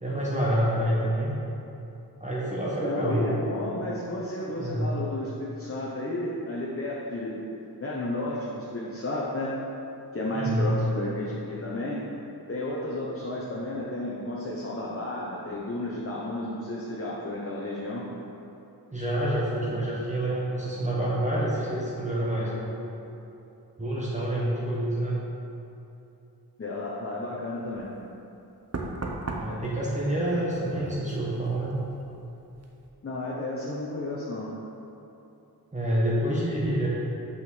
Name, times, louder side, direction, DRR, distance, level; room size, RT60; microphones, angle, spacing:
voice 1, 0.0-1.3 2.2-3.2 4.6-4.9 10.3-10.7 18.9-22.8 23.8-25.2 29.4-31.7 35.7-36.9, right 1 dB, 20° right, -7 dB, 1.2 m, -27 dB
voice 2, 2.8-7.4 7.8-9.5 10.1-12.0 12.5-18.0 26.6-27.9 33.0-34.5, left 1 dB, 35° left, -5 dB, 1.1 m, -32 dB
Knock, 27.7-27.9 28.7-32.2 32.5-32.9, right 2 dB, 40° right, 0.9 m, -38 dB
5.9 x 5.6 x 6.2 m, 2.9 s
wide cardioid pair, 85°, 39 cm